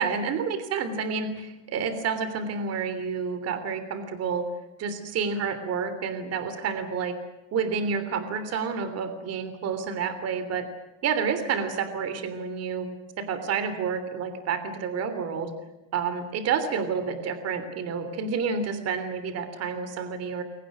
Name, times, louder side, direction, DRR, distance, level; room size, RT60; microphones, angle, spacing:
voice 1, 0.0-4.4 4.8-7.1 7.5-10.7 11.0-12.9 13.2-15.5 15.9-20.4, right 6 dB, 30° right, 10 dB, 3.3 m, -29 dB
29.5 x 24.0 x 6.3 m, 1.0 s
supercardioid pair, 155°, 48 cm